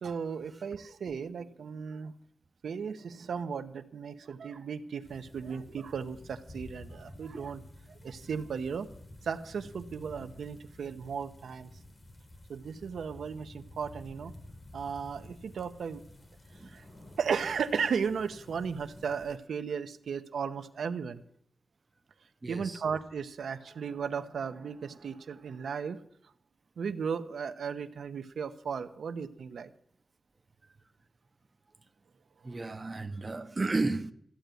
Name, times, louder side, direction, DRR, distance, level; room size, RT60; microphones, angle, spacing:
voice 1, 0.0-2.1 2.6-7.6 7.9-8.9 9.2-11.7 12.5-14.3 14.7-16.0 16.6-16.8 17.2-21.2 22.5-26.0 26.8-29.7 32.6-32.7, right 6 dB, 80° right, 0.9 m, -35 dB
sound 1, 5.0-19.4, left 1 dB, 25° left, 1.0 m, -51 dB
voice 2, 22.4-22.8 32.4-34.1, right 3 dB, 25° right, 0.6 m, -33 dB
14.0 x 8.2 x 9.1 m
wide cardioid pair, 170°, 0 cm